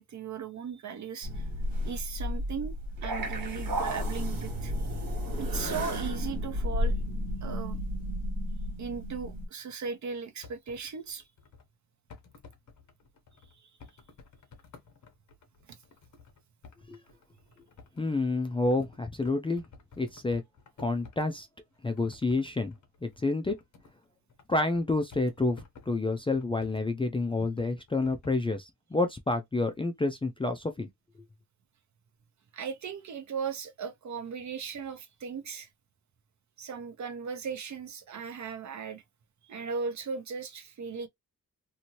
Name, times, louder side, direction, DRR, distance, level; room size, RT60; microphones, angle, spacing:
voice 1, 0.0-1.5 1.8-2.7 3.0-4.7 5.4-7.0 7.4-7.8 8.8-11.2 32.5-35.7 36.6-39.0 39.4-41.1, right 6 dB, 60° right, 0.8 m, -37 dB
I see dead people horror sound, 1.2-9.5, equal, 80° right, 1.5 m, -32 dB
sound 1, 10.4-11.7 12.1-21.4 21.7-24.0 24.3-26.9 27.6-28.4, left 4 dB, 60° left, 0.9 m, -54 dB
voice 2, 18.0-19.6 20.0-20.4 20.8-21.5 21.8-22.7 23.0-23.6 24.5-30.9, left 2 dB, 15° left, 0.3 m, -29 dB
2.8 x 2.6 x 2.9 m
wide cardioid pair, 170°, 33 cm